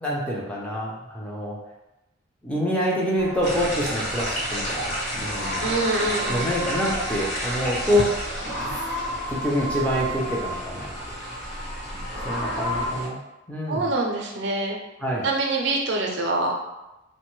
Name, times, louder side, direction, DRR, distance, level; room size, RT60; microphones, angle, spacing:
voice 1, 0.0-1.6 2.4-5.7 6.3-8.1 8.5-8.6 9.3-10.9 12.2-13.2 13.5-13.8 15.0-15.2, equal, 5° left, -4 dB, 0.4 m, -26 dB
sound 1, 3.2-12.9, equal, 75° left, 0.9 m, -33 dB
sound 2, 3.4-13.1, equal, 35° left, 0.9 m, -32 dB
voice 2, 5.6-6.7 13.7-14.8 15.2-16.5, right 2 dB, 60° right, 0 dB, 0.5 m, -25 dB
3.0 x 2.2 x 3.0 m, 0.96 s
head